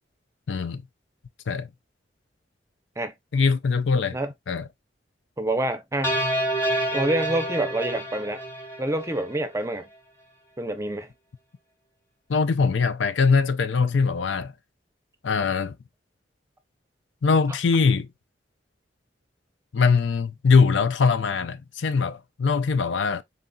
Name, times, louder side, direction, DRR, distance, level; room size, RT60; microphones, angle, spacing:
voice 1, 0.5-0.8 1.5-1.7 3.3-4.2 4.5-4.7 12.3-14.5 15.2-15.8 17.2-18.1 19.7-23.2, left 5 dB, 85° left, 0.5 m, -22 dB
voice 2, 5.4-6.2 6.9-8.4 8.8-9.9 10.6-11.1, right 1 dB, 15° right, 0.6 m, -27 dB
sound 1, 6.0-9.4, right 1 dB, 10° left, 1.2 m, -28 dB
4.0 x 3.9 x 2.2 m
head